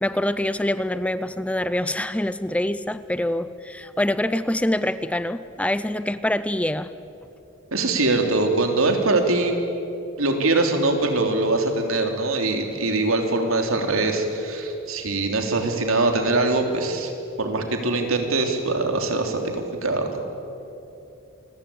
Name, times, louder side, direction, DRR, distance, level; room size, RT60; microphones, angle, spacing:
voice 1, 0.0-6.9, left 1 dB, 5° left, 14 dB, 0.5 m, -25 dB
voice 2, 7.7-9.5 10.2-17.1 17.4-20.2, right 2 dB, 80° right, 4 dB, 3.3 m, -22 dB
28.0 x 22.5 x 8.7 m, 2.8 s
head